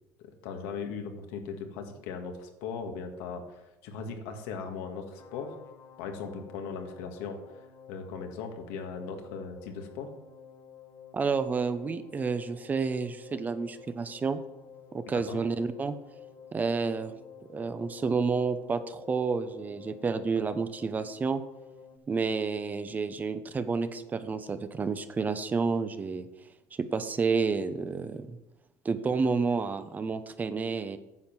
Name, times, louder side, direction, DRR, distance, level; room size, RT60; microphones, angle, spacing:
voice 1, 0.4-5.6 6.0-10.1 15.1-15.4, left 5 dB, 85° left, 4 dB, 1.7 m, -38 dB
sound 1, 5.2-22.0, left 7 dB, 45° left, 1.2 m, -52 dB
voice 2, 11.1-14.4 14.9-16.0 16.5-17.1 17.5-21.4 22.1-26.3 26.7-28.4 28.8-31.0, right 4 dB, 25° right, 11 dB, 0.8 m, -30 dB
9.7 x 7.0 x 6.1 m, 0.97 s
cardioid pair, 115°, 7 cm